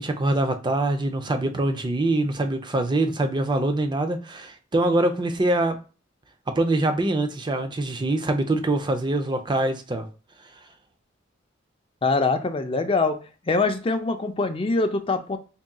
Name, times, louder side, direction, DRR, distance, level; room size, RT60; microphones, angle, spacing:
voice 1, 0.0-5.8 6.5-10.1, right 2 dB, 25° right, 0.5 m, -24 dB
voice 2, 12.0-13.2 13.5-15.4, left 3 dB, 30° left, 0.5 m, -23 dB
4.1 x 3.6 x 2.3 m
head